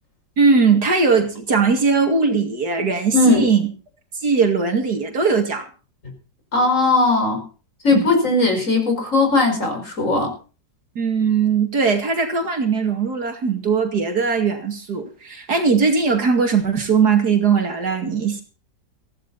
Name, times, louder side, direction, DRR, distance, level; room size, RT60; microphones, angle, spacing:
voice 1, 0.4-3.6 4.2-5.7 7.9-8.1 11.0-18.4, right 5 dB, 65° right, 5 dB, 2.9 m, -19 dB
voice 2, 3.1-3.5 6.5-7.5 7.8-10.3, left 2 dB, 45° left, 4 dB, 5.3 m, -18 dB
15.5 x 15.0 x 4.2 m, 0.36 s
omnidirectional pair, 1.9 m